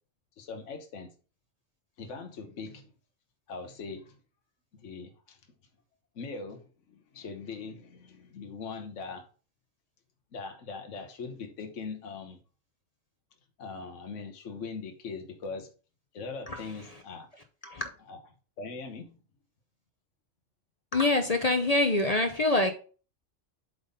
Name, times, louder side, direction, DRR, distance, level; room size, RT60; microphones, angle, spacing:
voice 1, 0.4-1.1 2.0-2.9 3.5-4.2 4.8-5.4 6.1-9.3 10.3-12.4 13.6-15.7 16.1-17.3 18.1-18.2 18.6-19.2, left 4 dB, 75° left, 1.3 m, -41 dB
voice 2, 16.5-17.0 17.6-17.9 20.9-22.7, left 2 dB, 40° left, 0.7 m, -26 dB
7.8 x 3.6 x 5.3 m
omnidirectional pair, 1.3 m